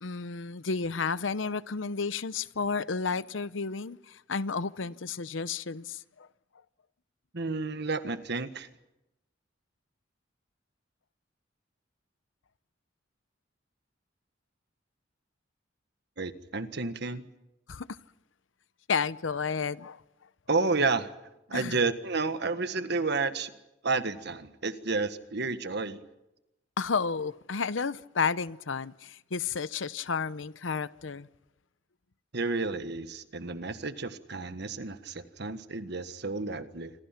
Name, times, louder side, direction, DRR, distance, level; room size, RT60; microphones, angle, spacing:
voice 1, 0.0-6.3 17.7-17.9 18.9-20.0 21.5-21.8 26.8-31.3, left 5 dB, 80° left, 0.8 m, -32 dB
voice 2, 7.3-8.7 16.2-17.2 20.5-21.1 21.5-23.5 23.8-26.0 32.3-36.9, right 3 dB, 60° right, 1.5 m, -31 dB
27.0 x 26.0 x 5.9 m
head